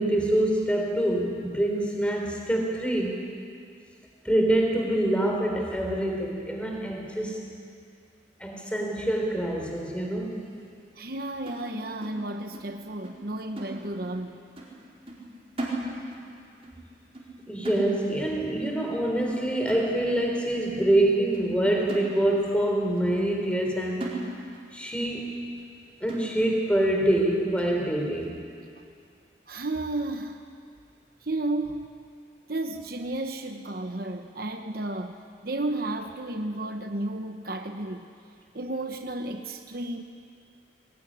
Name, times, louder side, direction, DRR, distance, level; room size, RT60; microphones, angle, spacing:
voice 1, 0.0-3.3 4.2-7.4 8.4-10.4 17.5-24.2 24.7-25.4 26.0-28.4, right 1 dB, 5° left, 1 dB, 3.5 m, -25 dB
voice 2, 11.0-14.4 29.5-30.4 31.2-31.9 32.5-35.2 35.4-38.1 38.5-40.0, right 2 dB, 50° right, 6 dB, 1.0 m, -32 dB
sound 1, 11.5-12.8 13.0-13.3 13.6-14.3 14.6-14.8 15.1-16.3 16.6-16.8 17.1-17.4 17.6-18.3 18.7-18.9 19.2-19.4 19.7-20.3 20.8-20.9 21.3-21.5 21.9-22.6 23.0-23.1 23.5-23.7 24.0-24.7 25.0-25.1 25.6-25.7 26.1-26.6 27.1-27.2 27.6-27.8, right 1 dB, 30° right, 4.4 m, -38 dB
21.0 x 19.5 x 10.0 m, 2.3 s
head